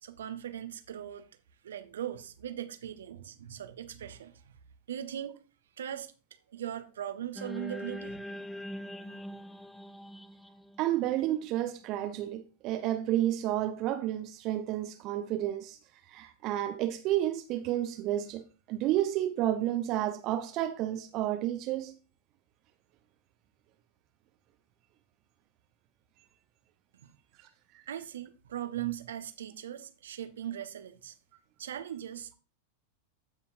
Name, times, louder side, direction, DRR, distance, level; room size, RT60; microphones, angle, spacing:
voice 1, 0.0-1.3 1.6-4.4 4.9-5.4 5.8-6.1 6.5-8.2 27.0-27.1 27.9-31.1 31.6-32.3, right 11 dB, 65° right, 1.0 m, -39 dB
sound 1, 7.4-11.7, equal, 5° left, 0.8 m, -42 dB
voice 2, 10.8-15.8 16.1-21.9, right 13 dB, 40° right, 0.8 m, -31 dB
15.0 x 5.6 x 2.6 m
figure-of-eight pair, 90°, 0 cm